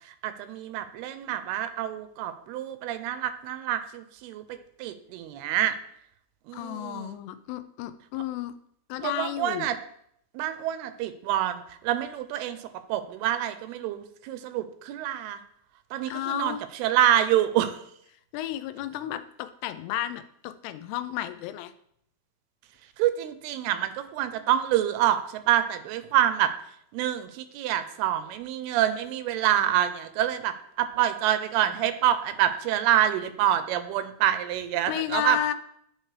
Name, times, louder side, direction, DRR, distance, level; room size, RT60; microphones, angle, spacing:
voice 1, 0.1-4.4 4.8-5.8 6.5-7.2 9.0-9.8 10.3-15.4 15.9-17.8 23.0-26.5 26.9-35.4, right 11 dB, 85° right, 10 dB, 2.5 m, -27 dB
voice 2, 6.5-8.5 8.9-9.7 16.1-16.6 18.3-21.7 34.9-35.5, left 12 dB, 90° left, 11 dB, 2.6 m, -32 dB
11.0 x 4.3 x 3.2 m, 0.70 s
omnidirectional pair, 4.6 m